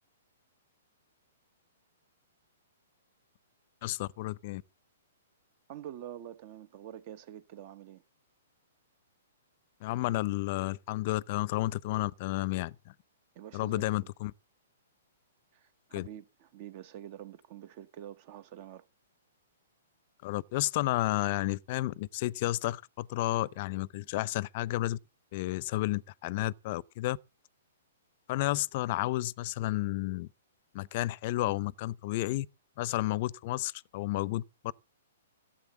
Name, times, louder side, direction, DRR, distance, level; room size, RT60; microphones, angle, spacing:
voice 1, 3.8-4.6 9.8-12.9 13.5-14.3 15.9-16.1 20.2-25.0 25.3-27.2 28.3-30.3 30.7-32.5 32.8-34.7, left 17 dB, 45° left, 0.6 m, -31 dB
voice 2, 5.7-8.0 13.3-13.9 15.5-18.8, right 11 dB, 45° right, 1.2 m, -46 dB
14.5 x 7.8 x 7.3 m
hypercardioid pair, 135°, 0 cm